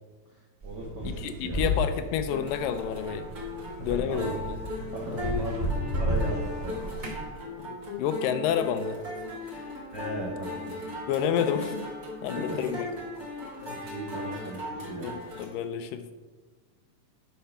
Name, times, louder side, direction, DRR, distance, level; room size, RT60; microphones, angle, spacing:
voice 1, 0.3-1.6 3.6-5.7 6.0-6.9 9.9-10.7 13.6-15.0, right 2 dB, 75° right, -3 dB, 0.9 m, -37 dB
sound 1, 0.6-7.2, equal, 20° right, 2.2 m, -32 dB
voice 2, 1.1-3.3 3.8-4.6 5.1-5.5 8.0-9.0 9.4-9.7 11.1-11.9 12.2-12.9 15.0-16.1, left 8 dB, 80° left, 10 dB, 2.1 m, -30 dB
sound 2, 2.3-15.5, left 2 dB, 35° right, 1.6 m, -38 dB
10.0 x 4.7 x 5.6 m, 1.3 s
omnidirectional pair, 4.0 m